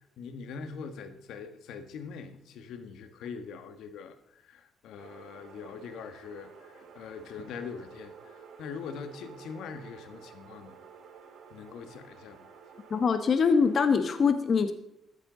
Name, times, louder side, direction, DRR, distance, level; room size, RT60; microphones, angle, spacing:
voice 1, 0.0-10.8 11.5-12.5, left 6 dB, 80° left, 10 dB, 1.5 m, -43 dB
sound 1, 5.0-14.2, right 6 dB, 80° right, 4.1 m, -51 dB
voice 2, 12.9-14.7, left 5 dB, 50° left, 9 dB, 1.2 m, -23 dB
14.0 x 13.5 x 3.9 m, 0.80 s
cardioid pair, 90°, 0 cm